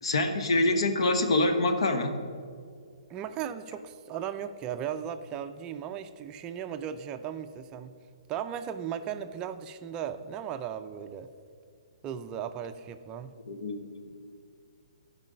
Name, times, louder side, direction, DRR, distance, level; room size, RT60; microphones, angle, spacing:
voice 1, 0.0-2.2 13.5-13.9, left 2 dB, 65° left, 7 dB, 1.1 m, -25 dB
voice 2, 3.1-7.9 8.3-11.3 12.0-13.3, right 9 dB, 25° right, 9 dB, 0.4 m, -36 dB
15.5 x 5.3 x 5.0 m, 2.2 s
figure-of-eight pair, 125°, 3 cm